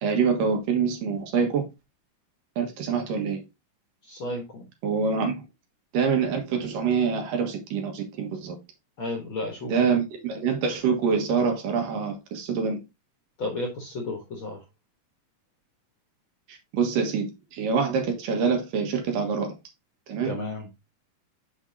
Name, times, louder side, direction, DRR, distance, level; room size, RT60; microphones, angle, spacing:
voice 1, 0.0-1.6 2.6-3.4 4.8-5.4 5.9-8.6 9.7-12.8 16.7-19.5 20.1-20.3, right 6 dB, 80° right, 3.0 m, -25 dB
voice 2, 4.1-4.7 9.0-9.8 13.4-14.6 20.2-20.7, left 2 dB, 55° left, 1.5 m, -32 dB
7.2 x 6.1 x 2.7 m
omnidirectional pair, 3.9 m